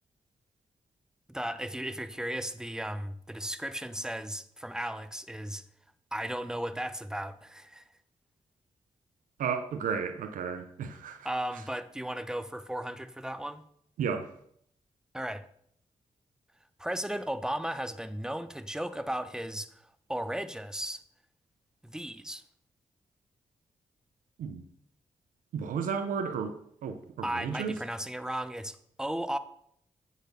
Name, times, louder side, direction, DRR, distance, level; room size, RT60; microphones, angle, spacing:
voice 1, 1.3-5.6 6.1-7.8 11.2-13.6 15.1-15.4 16.8-19.7 20.1-21.0 21.8-22.4 27.2-29.4, right 1 dB, 5° right, 0.7 m, -35 dB
voice 2, 9.4-11.2 14.0-14.3 24.4-24.6 25.5-26.5 26.8-27.7, right 6 dB, 90° right, 0.6 m, -33 dB
8.1 x 4.2 x 6.6 m
supercardioid pair, 45°, 13 cm